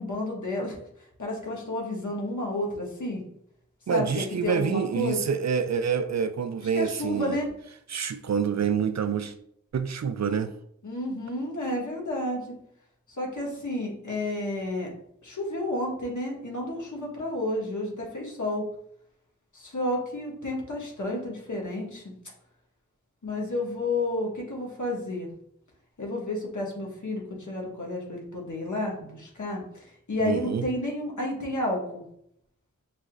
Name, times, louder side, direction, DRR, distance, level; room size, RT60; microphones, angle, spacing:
voice 1, 0.0-3.2 3.9-5.2 6.6-7.5 10.8-12.5 13.1-14.9 15.2-18.7 19.5-22.1 23.2-25.3 26.0-32.0, left 1 dB, 65° left, 1.4 m, -31 dB
voice 2, 3.9-7.4 7.9-9.3 9.7-10.5 30.2-30.6, right 7 dB, 55° right, 0.4 m, -27 dB
6.5 x 2.9 x 2.5 m
cardioid pair, 40°, 32 cm